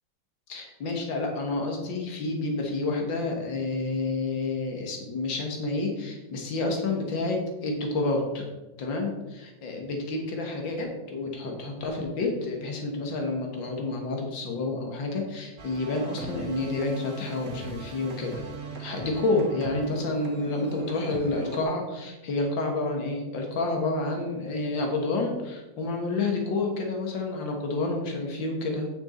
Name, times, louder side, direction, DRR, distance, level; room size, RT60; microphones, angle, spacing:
voice 1, 0.5-8.5 8.8-18.5 18.8-28.9, left 2 dB, 75° left, 2 dB, 2.4 m, -29 dB
sound 1, 15.6-21.6, right 3 dB, 50° right, 1.9 m, -39 dB
9.2 x 6.5 x 4.4 m, 1.1 s
omnidirectional pair, 2.1 m